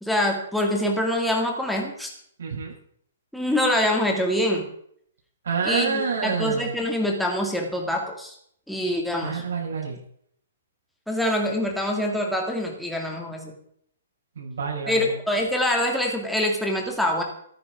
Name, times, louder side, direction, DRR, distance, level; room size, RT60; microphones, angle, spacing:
voice 1, 0.0-2.1 3.3-4.7 5.6-8.4 8.7-9.4 11.1-13.5 14.9-17.2, left 1 dB, ahead, 0 dB, 1.9 m, -25 dB
voice 2, 2.4-2.7 5.4-6.7 9.2-10.0 14.4-15.2, right 5 dB, 70° right, -3 dB, 7.4 m, -28 dB
14.0 x 13.0 x 5.0 m, 0.66 s
hypercardioid pair, 180°, 0 cm